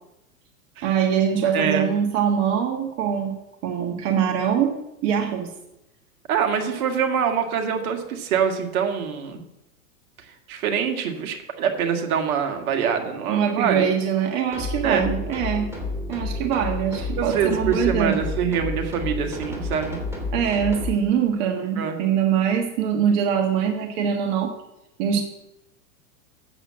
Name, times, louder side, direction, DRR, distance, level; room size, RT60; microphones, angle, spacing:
voice 1, 0.8-3.4 3.6-4.8 5.0-5.5 13.3-15.7 16.1-18.2 20.3-24.5 25.0-25.2, right 8 dB, 50° right, 3 dB, 1.5 m, -23 dB
voice 2, 1.5-1.9 6.3-9.4 10.5-13.8 14.8-15.1 17.1-20.0 21.8-22.0, right 7 dB, 70° right, 5 dB, 1.9 m, -24 dB
sound 1, 14.5-20.9, left 2 dB, 5° right, 3.1 m, -30 dB
8.0 x 7.6 x 7.4 m, 0.90 s
hypercardioid pair, 115°, 45 cm